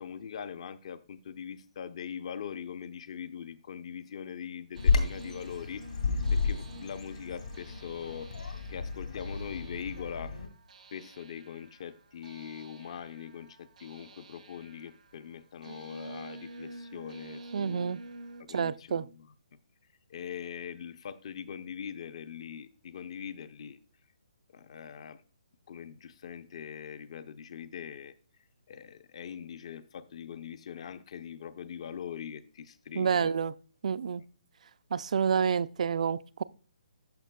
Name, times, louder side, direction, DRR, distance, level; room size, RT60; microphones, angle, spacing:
voice 1, 0.0-5.8 6.3-8.3 8.7-10.3 10.9-17.9 18.4-19.3 20.1-23.8 24.5-25.2 25.7-28.1 28.7-33.3, left 8 dB, 50° left, 0.5 m, -42 dB
sound 1, 4.7-18.4, right 2 dB, 75° right, 0.9 m, -49 dB
Bird vocalization bird call bird song, 4.8-10.5, left 4 dB, 80° left, 2.0 m, -32 dB
voice 2, 17.5-18.0 18.5-19.1 33.0-33.5 33.8-34.2 34.9-36.4, right 7 dB, 60° right, 0.4 m, -28 dB
12.5 x 5.0 x 2.2 m
hypercardioid pair, 155°, 4 cm